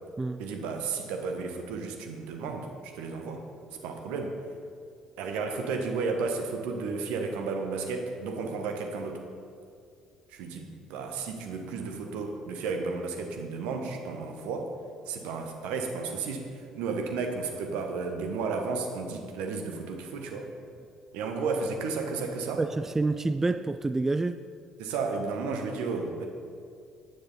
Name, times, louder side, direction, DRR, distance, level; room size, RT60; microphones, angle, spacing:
voice 1, 0.4-3.4 3.8-4.3 5.2-9.2 10.3-14.7 15.1-20.5 21.1-22.6 24.8-26.3, right 4 dB, 65° right, 1.4 m, -33 dB
voice 2, 22.6-24.4, right 3 dB, 15° right, 0.4 m, -28 dB
14.5 x 9.9 x 4.2 m
figure-of-eight pair, 50°, 2 cm